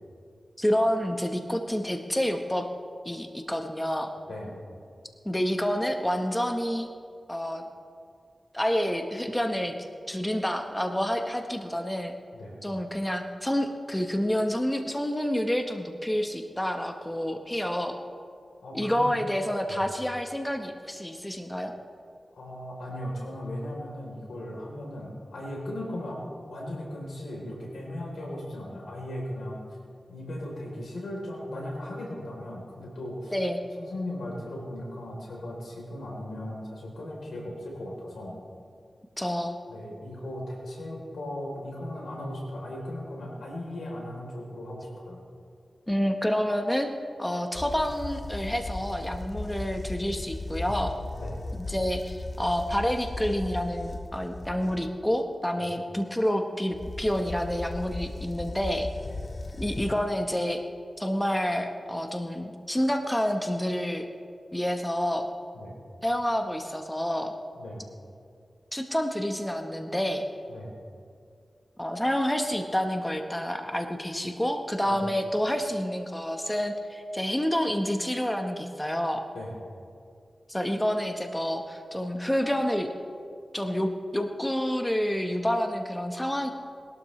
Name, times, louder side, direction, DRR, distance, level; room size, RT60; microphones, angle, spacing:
voice 1, 0.6-2.7 3.0-4.1 5.2-6.9 7.3-7.6 8.5-9.8 10.1-12.1 12.6-18.0 18.7-21.7 33.3-33.7 39.2-39.6 45.9-46.9 47.2-50.9 51.7-58.9 59.6-60.6 61.0-64.1 64.5-65.3 66.0-67.3 68.7-70.2 71.8-79.2 80.5-82.9 83.5-86.5, equal, 10° left, 5 dB, 1.2 m, -28 dB
voice 2, 18.6-19.1 19.7-19.8 22.3-29.6 30.1-33.4 33.8-38.4 39.2-39.3 39.7-45.2 51.1-51.4 55.6-55.7 59.0-59.2 65.5-65.8 67.5-67.9 70.5-70.7 74.9-75.1 79.3-79.5, left 1 dB, 90° left, -2 dB, 3.7 m, -37 dB
sound 1, 47.5-55.0 56.7-60.2, left 2 dB, 45° left, 0.7 m, -37 dB
21.0 x 12.5 x 3.3 m, 2.3 s
cardioid pair, 45°, 0 cm